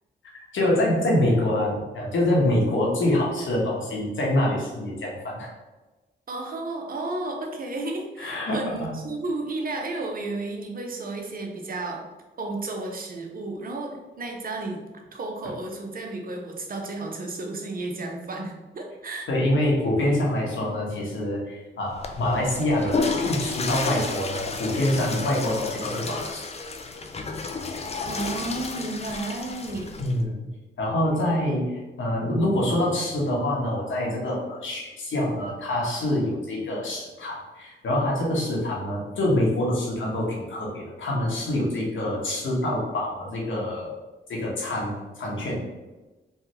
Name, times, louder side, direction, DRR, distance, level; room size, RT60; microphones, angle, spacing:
voice 1, 0.5-5.5 8.2-8.9 19.3-26.4 30.0-30.4 30.8-43.9 44.3-45.6, left 1 dB, 70° left, -3 dB, 1.0 m, -25 dB
voice 2, 6.3-12.0 12.4-14.8 15.1-19.3 28.1-29.9, right 2 dB, 45° right, 2 dB, 0.7 m, -32 dB
Water / Toilet flush, 21.9-30.2, left 4 dB, 30° left, 0.4 m, -31 dB
3.3 x 2.2 x 2.9 m, 1.2 s
supercardioid pair, 50°, 21 cm